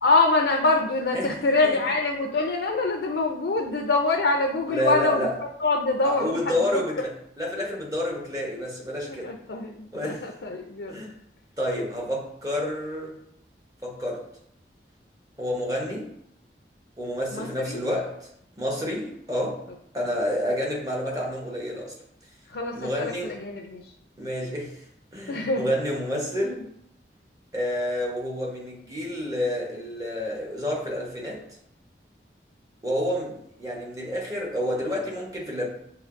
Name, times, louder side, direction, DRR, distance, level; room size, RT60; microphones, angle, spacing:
voice 1, 0.0-5.3 5.6-6.8 9.2-10.9 17.3-17.8 22.5-23.8 25.3-25.6, left 3 dB, 75° left, 2 dB, 0.5 m, -25 dB
voice 2, 1.1-1.8 4.7-5.3 6.0-9.3 9.9-10.2 10.9-11.1 11.6-13.1 13.8-14.2 15.4-16.1 17.0-18.3 18.6-19.6 19.9-22.0 22.7-23.4 24.2-24.8 25.1-26.7 27.5-31.4 32.8-35.7, equal, 20° right, -1 dB, 0.9 m, -29 dB
6.4 x 2.9 x 2.5 m, 0.73 s
head